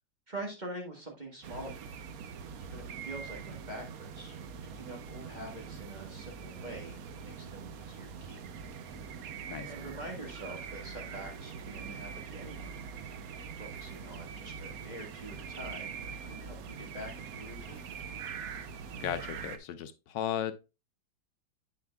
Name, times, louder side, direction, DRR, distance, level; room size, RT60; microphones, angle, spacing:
voice 1, 0.3-1.9 2.6-4.4 4.6-8.4 9.7-12.7 13.6-17.9, right 1 dB, 25° right, 1.5 m, -45 dB
sound 1, 1.4-19.6, right 6 dB, 65° right, 1.0 m, -43 dB
voice 2, 19.0-20.5, left 9 dB, 80° left, 1.3 m, -35 dB
8.4 x 6.9 x 2.3 m
omnidirectional pair, 2.0 m